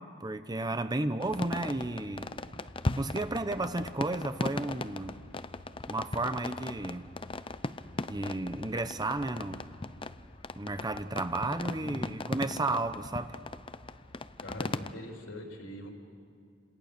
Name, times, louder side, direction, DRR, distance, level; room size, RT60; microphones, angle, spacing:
voice 1, 0.0-2.3 2.9-5.2 5.9-7.1 8.1-9.6 10.6-13.4, right 2 dB, 20° right, 0.8 m, -33 dB
sound 1, 1.2-14.9, left 2 dB, 25° left, 0.6 m, -38 dB
voice 2, 11.8-12.2 14.4-15.9, left 1 dB, 80° left, 3.9 m, -43 dB
29.0 x 27.5 x 6.8 m
head